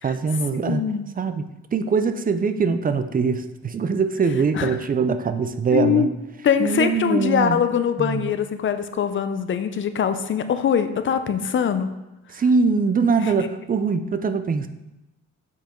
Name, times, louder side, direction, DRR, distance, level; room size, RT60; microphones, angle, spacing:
voice 1, 0.0-0.8 1.2-6.1 6.6-7.6 8.0-8.3 12.3-14.7, right 5 dB, 30° right, 10 dB, 0.5 m, -22 dB
voice 2, 0.5-1.0 4.6-4.7 5.7-6.1 6.4-11.9, left 8 dB, 40° left, 9 dB, 0.6 m, -22 dB
7.2 x 4.6 x 3.8 m, 0.96 s
cardioid pair, 90°, 30 cm